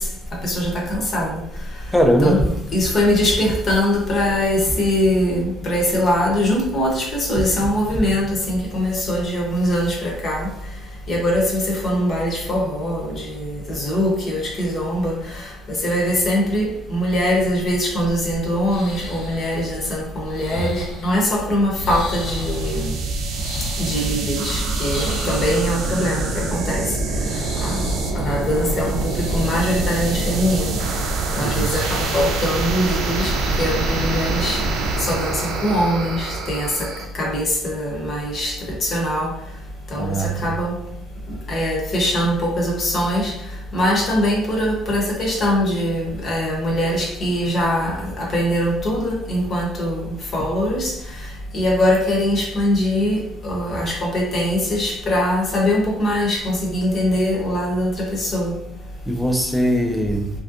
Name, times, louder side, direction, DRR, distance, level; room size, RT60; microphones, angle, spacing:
voice 1, 0.4-1.4 2.2-10.5 11.1-22.9 23.8-26.8 27.6-27.9 28.2-30.8 31.4-33.3 33.6-34.6 35.0-36.7 37.1-38.5 38.8-39.3 39.9-40.7 41.5-43.3 43.7-50.9 51.5-58.6, equal, 30° left, -1 dB, 0.7 m, -22 dB
voice 2, 1.9-2.4 31.4-31.7 39.9-40.3 59.1-60.3, equal, 5° left, 3 dB, 0.3 m, -20 dB
sound 1, 18.0-35.5, left 1 dB, 90° left, 1.0 m, -34 dB
sound 2, 21.7-37.0, right 3 dB, 70° right, 0.5 m, -25 dB
3.2 x 2.6 x 2.5 m, 0.74 s
cardioid pair, 170°, 0 cm